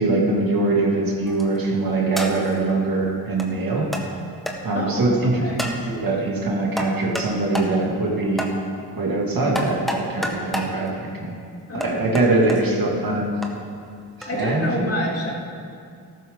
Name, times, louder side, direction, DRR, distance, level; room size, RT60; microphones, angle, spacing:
voice 1, 0.0-3.9 4.6-8.5 8.9-11.3 11.7-13.3 14.2-14.9, right 2 dB, 55° right, -2 dB, 2.8 m, -22 dB
sound 1, 1.3-1.6 2.2-2.6 3.4-3.5 3.9-4.1 4.5-4.6 5.6-5.8 6.8-7.3 7.5-7.7 8.4-8.5 9.5-10.7 11.8-12.6 13.4-13.5 14.2-14.3, equal, ahead, 1.9 m, -28 dB
voice 2, 4.7-5.6 11.7-12.8 14.3-15.3, left 1 dB, 35° left, -4 dB, 3.5 m, -29 dB
13.5 x 12.5 x 4.1 m, 2.3 s
cardioid pair, 60°, 42 cm